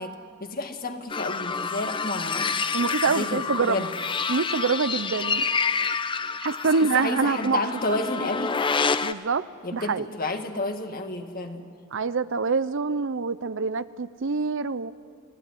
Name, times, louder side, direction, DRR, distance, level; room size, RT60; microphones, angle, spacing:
voice 1, 0.0-2.5 3.1-3.9 6.7-8.6 9.6-11.7, left 2 dB, 40° left, 5 dB, 1.9 m, -31 dB
sound 1, 1.1-9.1, left 5 dB, 25° left, 0.6 m, -28 dB
voice 2, 2.7-3.9 4.3-5.4 6.4-7.6 9.0-9.5 9.7-10.1 11.9-14.9, right 4 dB, 60° right, 14 dB, 0.7 m, -25 dB
29.0 x 17.5 x 9.9 m, 2.2 s
head